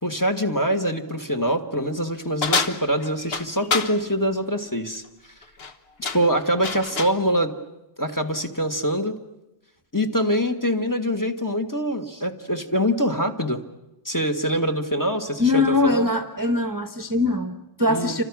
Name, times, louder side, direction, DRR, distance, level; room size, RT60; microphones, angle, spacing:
voice 1, 0.0-5.0 6.0-7.5 8.0-9.2 9.9-13.6 14.0-16.1 17.9-18.2, equal, 20° left, 6 dB, 1.7 m, -24 dB
sound 1, 2.4-4.0 5.4-5.7 6.0-7.2, left 4 dB, 70° left, 1.5 m, -27 dB
voice 2, 15.4-18.2, left 2 dB, 20° right, 7 dB, 1.0 m, -22 dB
29.5 x 25.0 x 6.2 m, 0.96 s
omnidirectional pair, 1.1 m